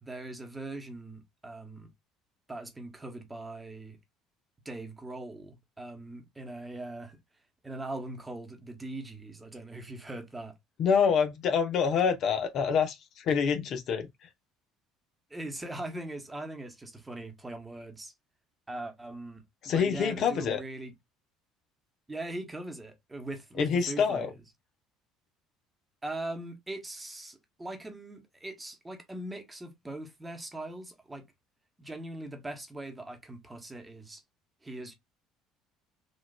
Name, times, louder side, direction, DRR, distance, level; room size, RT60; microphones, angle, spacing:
voice 1, 0.0-1.9 2.5-4.0 4.6-7.2 7.6-10.6 15.3-18.1 18.7-20.9 22.1-24.3 26.0-31.3 31.8-34.2 34.6-34.9, right 2 dB, 15° right, 1.0 m, -41 dB
voice 2, 10.8-14.1 19.6-20.6 23.6-24.3, left 6 dB, 55° left, 0.7 m, -26 dB
3.9 x 2.4 x 2.2 m
supercardioid pair, 85°, 0 cm